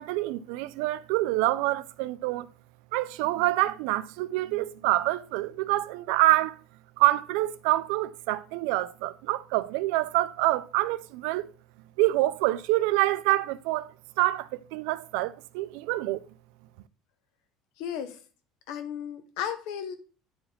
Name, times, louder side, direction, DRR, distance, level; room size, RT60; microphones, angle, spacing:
voice 1, 0.0-2.5 2.9-6.6 7.0-11.5 12.0-16.2, right 17 dB, 90° right, 0.5 m, -26 dB
voice 2, 17.8-18.2 18.7-19.9, left 8 dB, 70° left, 1.2 m, -34 dB
9.5 x 4.8 x 3.5 m
cardioid pair, 170°, 0 cm